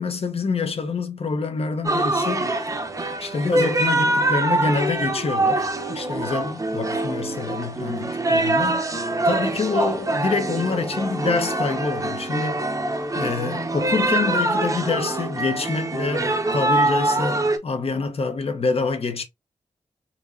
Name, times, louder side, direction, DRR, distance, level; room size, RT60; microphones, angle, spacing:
voice 1, 0.0-2.5 3.2-12.8 13.1-19.2, left 4 dB, 55° left, 1.0 m, -26 dB
sound 1, 1.8-17.6, right 2 dB, 30° right, 0.9 m, -24 dB
4.3 x 3.1 x 2.7 m
wide cardioid pair, 85°, 12 cm